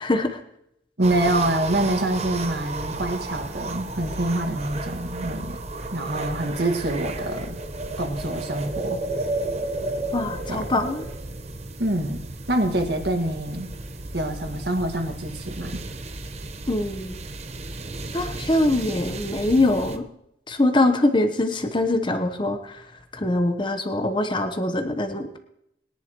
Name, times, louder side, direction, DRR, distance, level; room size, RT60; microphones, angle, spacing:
voice 1, 0.0-0.4 10.1-11.0 16.7-17.2 18.1-20.0 20.5-22.8 23.1-25.4, left 2 dB, 25° left, 7 dB, 1.0 m, -23 dB
sound 1, 1.0-20.0, right 2 dB, 35° right, 0.9 m, -33 dB
voice 2, 1.0-5.6 5.9-7.6 8.0-9.0 10.5-10.6 11.8-13.7 14.1-15.8, right 1 dB, 60° right, 4 dB, 1.9 m, -26 dB
21.5 x 10.5 x 3.1 m, 0.79 s
head